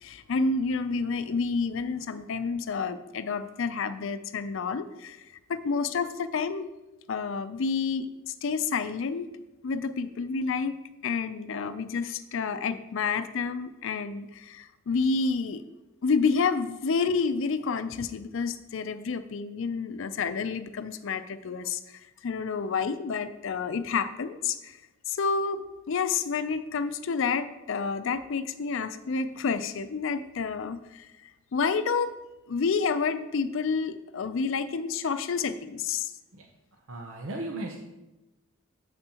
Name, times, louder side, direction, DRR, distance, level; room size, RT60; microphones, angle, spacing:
voice 1, 0.0-5.2 5.5-6.7 7.1-8.1 8.4-9.3 9.6-15.6 16.0-24.8 25.1-32.1 32.5-36.1, left 5 dB, 65° left, 11 dB, 0.5 m, -29 dB
voice 2, 36.9-37.8, right 2 dB, 80° right, 2 dB, 0.8 m, -36 dB
9.0 x 7.7 x 2.9 m, 1.0 s
head